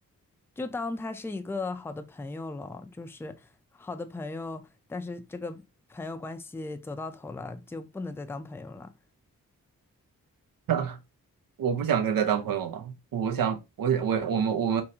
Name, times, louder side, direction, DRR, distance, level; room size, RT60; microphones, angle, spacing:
voice 1, 0.6-3.5 3.7-5.6 5.9-8.9, left 3 dB, 5° left, 0.4 m, -37 dB
voice 2, 11.6-14.8, right 8 dB, 70° right, 0.7 m, -27 dB
3.6 x 2.6 x 2.7 m
cardioid pair, 55°, 36 cm